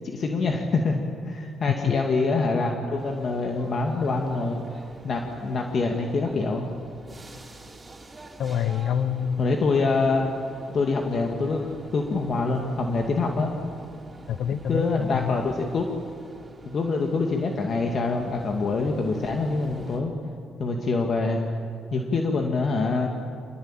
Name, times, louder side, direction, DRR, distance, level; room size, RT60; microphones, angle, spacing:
voice 1, 0.0-4.6 5.0-6.7 9.4-10.3 10.7-13.5 14.7-15.9 16.7-20.1 20.6-21.4 21.9-23.1, left 3 dB, 50° left, 2 dB, 2.3 m, -25 dB
sound 1, 3.0-20.0, right 2 dB, 20° right, 4.3 m, -46 dB
voice 2, 8.4-9.5 14.3-15.3, left 8 dB, 75° left, 12 dB, 0.8 m, -26 dB
26.5 x 20.5 x 9.0 m, 2.3 s
cardioid pair, 90°, 0 cm